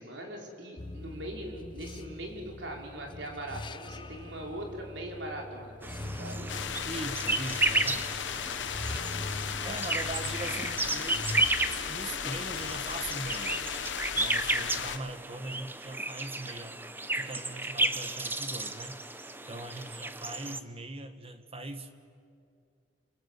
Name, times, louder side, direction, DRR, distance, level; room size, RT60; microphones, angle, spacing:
voice 1, 0.0-5.9 6.2-6.6 8.3-9.4, right 1 dB, 85° right, 0 dB, 5.1 m, -41 dB
sound 1, 0.8-11.8, left 2 dB, 25° left, 0.6 m, -42 dB
sound 2, 5.8-20.6, right 2 dB, 10° right, 0.9 m, -33 dB
sound 3, 6.5-15.0, left 8 dB, 90° left, 0.9 m, -36 dB
voice 2, 6.8-8.3 9.6-11.5 11.9-13.7 14.2-16.8 17.1-19.0 19.5-21.9, right 2 dB, 35° right, 8 dB, 1.6 m, -41 dB
29.5 x 24.0 x 8.3 m, 2.4 s
head